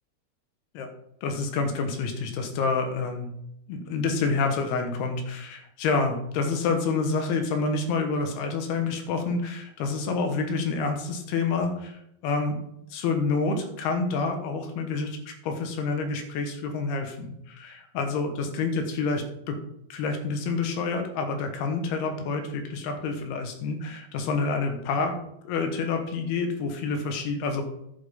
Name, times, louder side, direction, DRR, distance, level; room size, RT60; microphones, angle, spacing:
voice 1, 1.2-3.3 3.7-12.6 12.9-19.6 19.9-25.2 25.4-27.6, left 4 dB, 80° left, 5 dB, 3.2 m, -28 dB
11.0 x 7.8 x 3.7 m, 0.77 s
omnidirectional pair, 4.5 m